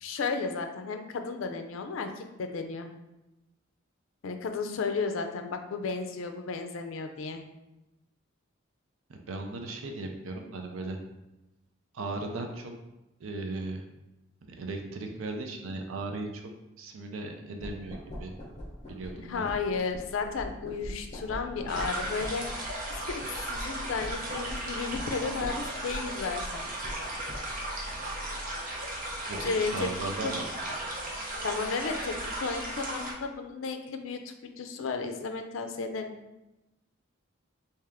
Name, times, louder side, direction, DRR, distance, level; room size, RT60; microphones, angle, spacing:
voice 1, 0.0-2.9 4.2-7.4 19.1-22.7 23.0-26.7 29.4-29.9 30.2-30.3 31.4-36.1, left 4 dB, 75° left, 5 dB, 0.4 m, -33 dB
voice 2, 9.1-11.0 11.9-12.7 13.2-13.8 14.4-16.4 16.8-18.3 18.9-19.5 29.3-30.5, right 2 dB, 90° right, 3 dB, 0.5 m, -37 dB
sound 1, 17.6-27.7, equal, 35° left, 0.8 m, -43 dB
sound 2, 21.7-33.1, right 1 dB, 45° right, 0.8 m, -36 dB
3.3 x 2.8 x 3.5 m, 0.97 s
head